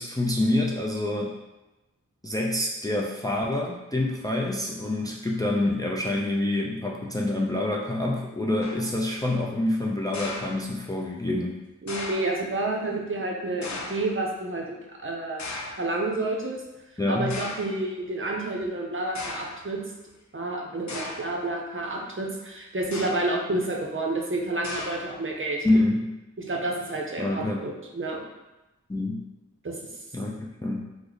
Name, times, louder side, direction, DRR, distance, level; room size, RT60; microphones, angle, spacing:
voice 1, 0.0-1.4 2.2-11.6 17.0-17.4 25.6-26.1 27.2-27.6 28.9-29.2 30.1-30.8, left 1 dB, 15° left, -2 dB, 0.4 m, -26 dB
sound 1, 8.6-9.0 10.1-11.0 11.9-12.4 13.6-14.2 15.4-15.9 16.7-16.8 17.3-17.8 18.6-18.7 19.2-19.6 20.9-21.4 22.8-23.4 24.6-25.3, left 2 dB, 70° left, 0.5 m, -37 dB
voice 2, 11.8-15.5 15.8-16.6 17.1-19.8 20.3-25.7 26.5-28.2 29.6-29.8, right 2 dB, 45° right, -1 dB, 0.6 m, -29 dB
3.2 x 2.0 x 3.8 m, 1.0 s
wide cardioid pair, 65°, 30 cm